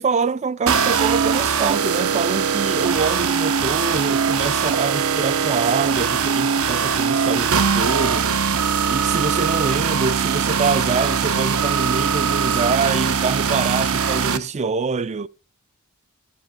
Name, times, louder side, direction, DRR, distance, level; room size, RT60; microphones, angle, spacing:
voice 1, 0.0-8.3 8.9-15.3, right 4 dB, 30° right, 0.4 m, -25 dB
sound 1, 0.7-14.4, right 6 dB, 70° right, 0.7 m, -21 dB
12.5 x 7.6 x 3.6 m
head